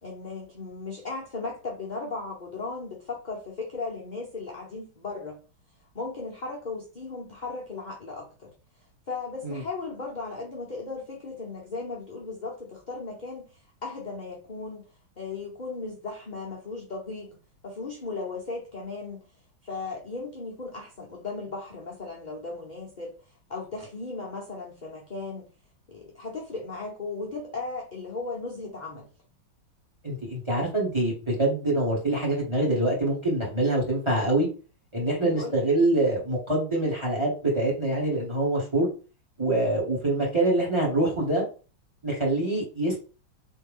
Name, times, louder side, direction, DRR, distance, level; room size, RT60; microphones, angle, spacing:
voice 1, 0.0-5.4 5.9-8.5 9.1-14.9 15.2-17.4 17.6-19.3 19.6-23.2 23.5-25.5 25.9-29.1 35.0-35.7, left 3 dB, 40° left, -3 dB, 0.6 m, -36 dB
voice 2, 30.0-34.5 34.9-38.9 39.4-41.4 42.0-43.0, right 2 dB, 15° right, -3 dB, 1.9 m, -25 dB
4.3 x 3.5 x 3.6 m, 0.35 s
omnidirectional pair, 2.3 m